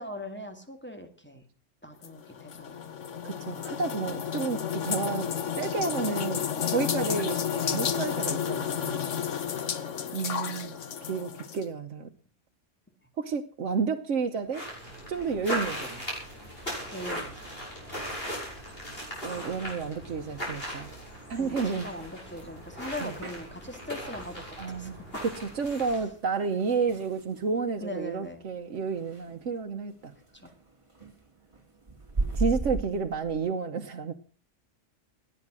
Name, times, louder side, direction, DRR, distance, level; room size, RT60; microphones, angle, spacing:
voice 1, 0.0-1.4 1.8-3.0 9.4-9.8 16.9-17.5 21.4-25.2 27.8-28.4 30.3-30.5, left 1 dB, 10° left, 5 dB, 2.2 m, -41 dB
sound 1, 2.0-11.6, left 8 dB, 75° left, 1.4 m, -31 dB
voice 2, 3.2-9.1 10.1-10.8 11.1-12.1 13.2-14.7 15.1-16.0 19.2-20.9 21.3-21.9 23.0-23.1 24.6-30.1 32.3-34.1, right 5 dB, 75° right, 3 dB, 1.3 m, -31 dB
sound 2, 14.3-33.5, right 3 dB, 25° right, 2.3 m, -41 dB
sound 3, 14.5-26.1, equal, 50° left, 8.0 m, -38 dB
18.0 x 11.0 x 6.2 m, 0.41 s
omnidirectional pair, 1.3 m